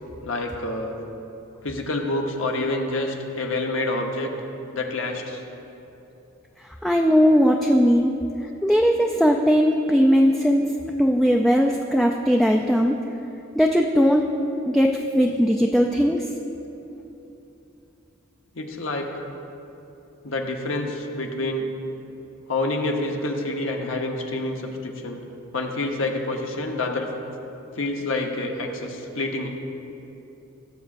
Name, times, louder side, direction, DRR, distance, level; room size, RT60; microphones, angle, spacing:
voice 1, 0.2-1.0 1.6-4.3 4.7-5.4 18.6-19.2 20.2-21.7 22.5-25.2 25.5-27.1 27.8-29.5, left 2 dB, 75° left, 2 dB, 1.0 m, -27 dB
voice 2, 6.8-8.2 8.6-10.7 11.0-13.0 13.6-14.3 14.7-16.2, equal, ahead, 1 dB, 0.3 m, -19 dB
17.5 x 7.1 x 2.5 m, 3.0 s
head